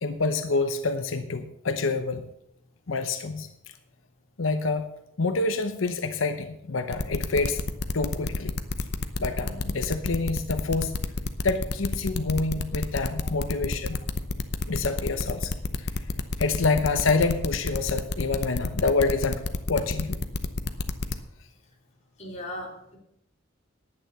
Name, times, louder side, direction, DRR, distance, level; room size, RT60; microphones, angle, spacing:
voice 1, 0.0-2.2 2.9-3.5 4.4-4.9 5.2-7.6 7.9-8.5 9.2-11.0 11.4-14.0 14.7-15.6 16.4-19.4 19.7-20.2, left 3 dB, 90° left, 8 dB, 0.8 m, -27 dB
sound 1, 6.9-21.1, left 3 dB, 55° left, 0.8 m, -29 dB
voice 2, 22.2-23.0, left 1 dB, 35° left, -1 dB, 2.9 m, -38 dB
10.5 x 8.9 x 6.7 m, 0.79 s
head